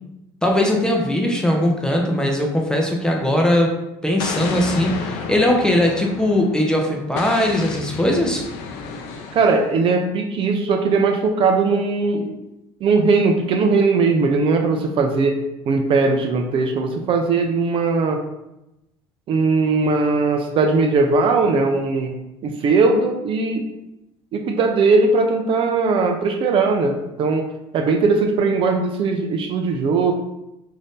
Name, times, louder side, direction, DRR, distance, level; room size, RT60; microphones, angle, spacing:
voice 1, 0.4-3.7 4.0-8.4, left 1 dB, 5° left, 0 dB, 0.6 m, -19 dB
Explosion, 4.2-6.6 7.2-9.7, left 5 dB, 80° left, 0.4 m, -31 dB
voice 2, 9.3-12.4 12.8-18.2 19.3-22.1 22.4-23.6 24.3-27.5 27.7-30.1, right 4 dB, 50° right, 4 dB, 0.4 m, -19 dB
2.7 x 2.5 x 3.5 m, 0.91 s
supercardioid pair, 100°, 12 cm